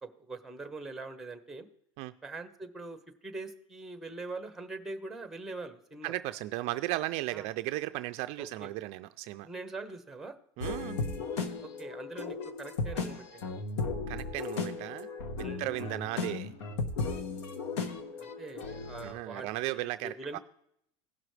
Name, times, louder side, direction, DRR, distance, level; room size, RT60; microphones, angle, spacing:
voice 1, 0.0-1.7 2.2-6.1 7.3-7.5 8.4-8.7 9.4-10.4 11.6-13.4 14.8-14.9 15.4-15.6 18.2-20.4, right 3 dB, ahead, 7 dB, 1.0 m, -43 dB
voice 2, 6.0-9.5 10.6-11.0 14.1-15.1 15.4-16.5 19.0-20.4, right 17 dB, 50° right, 10 dB, 0.4 m, -36 dB
sound 1, 10.6-19.1, left 4 dB, 80° left, 1.2 m, -36 dB
17.0 x 6.0 x 3.2 m, 0.71 s
supercardioid pair, 140°, 14 cm